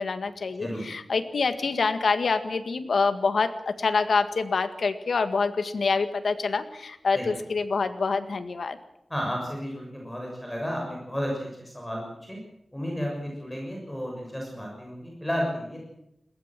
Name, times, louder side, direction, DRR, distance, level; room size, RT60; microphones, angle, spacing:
voice 1, 0.0-8.8, left 4 dB, 85° left, 9 dB, 1.7 m, -26 dB
voice 2, 9.1-12.0 12.3-12.4 12.7-15.8, equal, 5° left, -1 dB, 6.6 m, -32 dB
21.5 x 17.0 x 7.6 m, 0.82 s
wide cardioid pair, 110°, 0 cm